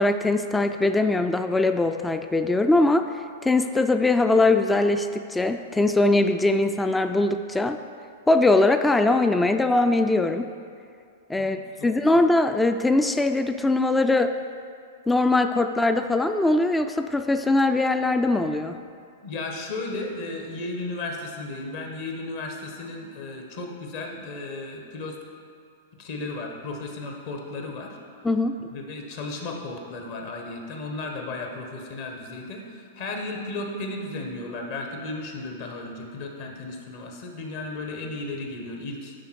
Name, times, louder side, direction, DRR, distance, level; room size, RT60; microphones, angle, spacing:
voice 1, 0.0-3.1 3.4-7.8 8.3-10.5 11.3-11.6 11.8-14.4 15.1-18.8 28.2-28.7, left 2 dB, 10° left, 8 dB, 0.3 m, -21 dB
voice 2, 11.4-11.9 19.2-25.2 26.0-28.0 28.7-39.1, left 2 dB, 50° left, 2 dB, 1.2 m, -34 dB
10.5 x 3.7 x 4.6 m, 2.4 s
figure-of-eight pair, 100°, 0 cm